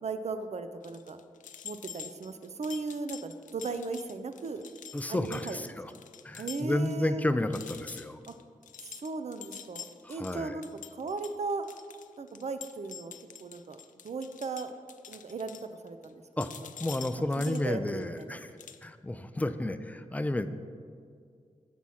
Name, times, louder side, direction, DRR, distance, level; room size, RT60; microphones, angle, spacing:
voice 1, 0.0-1.2 1.6-4.6 5.1-5.8 6.4-7.2 8.3-8.4 8.8-11.7 12.2-13.1 13.4-13.8 14.0-14.7 15.1-16.2 17.4-18.4, right 4 dB, 55° right, 9 dB, 0.5 m, -37 dB
sound 1, 0.8-6.9 7.2-7.3 7.5-16.1 16.4-18.2 18.6-18.8, left 8 dB, 75° left, 0.4 m, -46 dB
voice 2, 4.9-5.9 6.2-8.2 10.0-10.6 16.4-16.5 16.8-18.5 18.8-20.5, left 1 dB, 10° left, 10 dB, 0.4 m, -31 dB
7.1 x 4.2 x 6.2 m, 2.2 s
cardioid pair, 45°, 13 cm